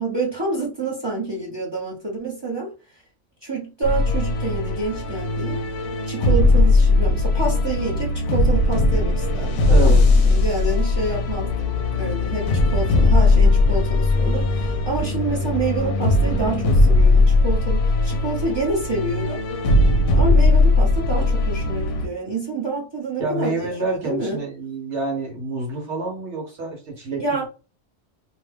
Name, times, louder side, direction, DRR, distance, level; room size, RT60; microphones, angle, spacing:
voice 1, 0.0-2.7 3.4-5.6 6.1-19.4 20.1-24.4 27.2-27.5, right 2 dB, 25° right, 0.9 m, -28 dB
sound 1, 3.8-22.1, left 2 dB, 85° left, 0.9 m, -19 dB
voice 2, 9.7-10.1 23.2-27.4, right 3 dB, 75° right, 1.2 m, -27 dB
sound 2, 11.7-17.1, right 2 dB, 60° right, 0.8 m, -33 dB
2.7 x 2.2 x 3.3 m
omnidirectional pair, 1.2 m